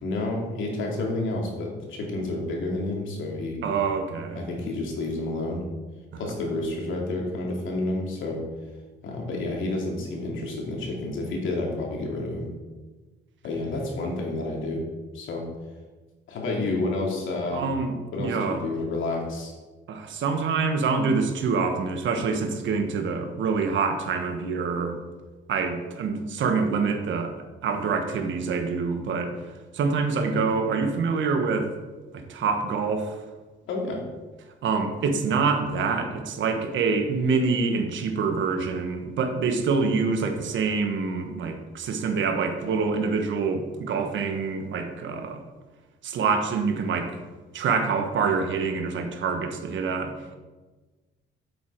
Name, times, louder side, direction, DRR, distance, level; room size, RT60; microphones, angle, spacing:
voice 1, 0.0-3.6 4.3-5.6 6.2-8.4 9.0-12.5 13.4-14.8 15.1-15.4 16.3-17.6 18.1-19.5 33.7-34.0, left 2 dB, 75° left, -1 dB, 2.7 m, -29 dB
voice 2, 3.6-4.5 6.1-6.3 17.5-18.6 19.9-25.0 25.5-27.3 27.6-29.4 29.7-31.7 32.1-33.2 34.6-45.4 46.0-47.2 47.5-50.4, right 4 dB, 70° right, 5 dB, 1.4 m, -26 dB
8.0 x 7.8 x 4.7 m, 1.3 s
cardioid pair, 90°, 20 cm